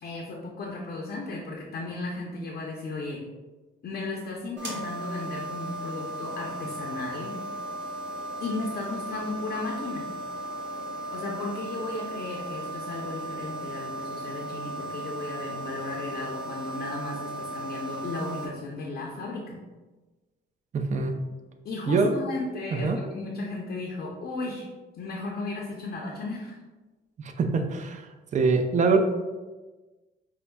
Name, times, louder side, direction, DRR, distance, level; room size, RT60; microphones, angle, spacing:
voice 1, 0.0-3.2 3.8-7.4 8.4-10.1 11.1-19.6 21.6-24.7 24.9-26.6, left 3 dB, 50° left, -2 dB, 0.6 m, -35 dB
sound 1, 4.6-18.5, right 1 dB, 65° right, 1.1 m, -36 dB
voice 2, 20.7-21.2 21.9-22.1 22.7-23.0 27.2-28.1 28.3-29.0, right 4 dB, 40° right, 5 dB, 0.4 m, -24 dB
5.3 x 2.1 x 2.2 m, 1.2 s
cardioid pair, 90°, 20 cm